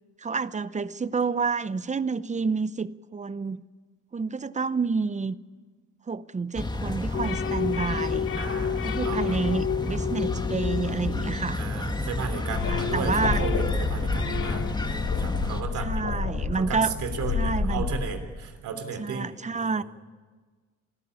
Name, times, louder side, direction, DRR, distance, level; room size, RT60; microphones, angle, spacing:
voice 1, 0.2-3.6 4.1-5.3 6.1-8.4 8.8-11.6 12.7-13.4 15.8-16.9 17.3-17.9 19.0-19.8, right 4 dB, 25° right, 16 dB, 0.7 m, -29 dB
sound 1, 6.5-15.6, left 2 dB, 15° left, 2.0 m, -31 dB
sound 2, 7.1-11.8 12.2-15.0, left 9 dB, 45° left, 0.7 m, -32 dB
voice 2, 8.4-9.4 11.6-16.2 16.6-19.8, right 6 dB, 75° right, 7 dB, 3.2 m, -35 dB
sound 3, 12.5-18.0, left 5 dB, 80° left, 5.0 m, -30 dB
26.5 x 14.0 x 9.8 m, 1.4 s
cardioid pair, 90°, 30 cm